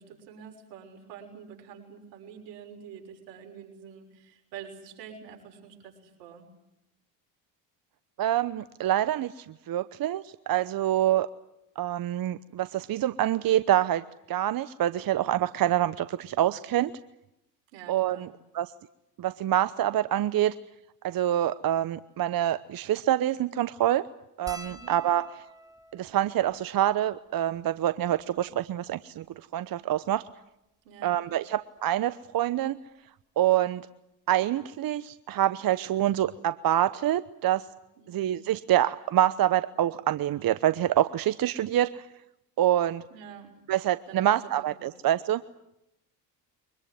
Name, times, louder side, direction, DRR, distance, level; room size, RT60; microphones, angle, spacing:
voice 1, 0.0-6.5 17.7-18.3 24.6-25.0 30.8-31.3 38.0-38.4 43.1-43.6 44.1-44.9, right 7 dB, 75° right, 3 dB, 6.3 m, -47 dB
voice 2, 8.2-11.3 11.8-16.9 17.9-18.3 18.5-18.7 19.2-20.5 21.0-24.1 24.4-25.3 25.9-30.2 31.0-32.8 33.4-33.9 34.3-37.7 38.1-42.1 42.6-43.0 43.7-45.4, right 12 dB, 45° right, 15 dB, 0.9 m, -26 dB
sound 1, 24.5-29.1 29.8-29.9 30.1-30.3 31.6-31.8 33.2-33.3 33.6-33.8, equal, 5° right, 3.0 m, -50 dB
24.0 x 21.5 x 9.5 m, 0.85 s
hypercardioid pair, 70°, 49 cm